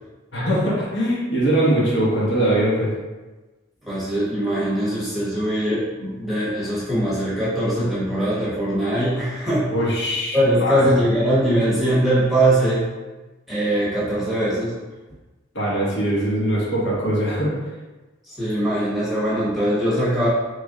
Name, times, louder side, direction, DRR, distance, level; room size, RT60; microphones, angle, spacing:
voice 1, 0.3-2.9 9.7-10.9 15.5-17.5, right 1 dB, 60° left, -6 dB, 1.0 m, -21 dB
voice 2, 3.8-9.7 10.3-12.9 13.5-14.7 18.2-20.3, right 1 dB, ahead, -10 dB, 1.0 m, -21 dB
3.2 x 2.5 x 3.6 m, 1.2 s
head